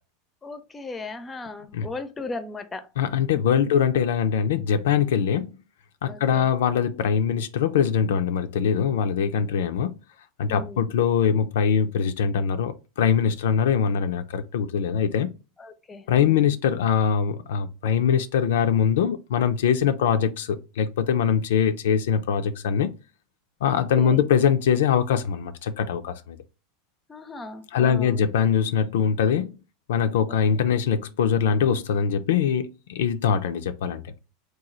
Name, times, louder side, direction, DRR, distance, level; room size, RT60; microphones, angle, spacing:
voice 1, 0.4-2.9 3.6-3.7 6.1-6.5 10.5-10.9 15.6-16.5 23.7-24.2 27.1-28.3 30.3-30.4, left 3 dB, 20° left, 0.5 m, -37 dB
voice 2, 3.0-5.5 6.0-10.0 10.4-15.3 16.1-22.9 23.6-26.4 27.7-29.6 29.9-34.0, left 7 dB, 80° left, 0.3 m, -22 dB
3.0 x 2.3 x 3.8 m
hypercardioid pair, 110°, 0 cm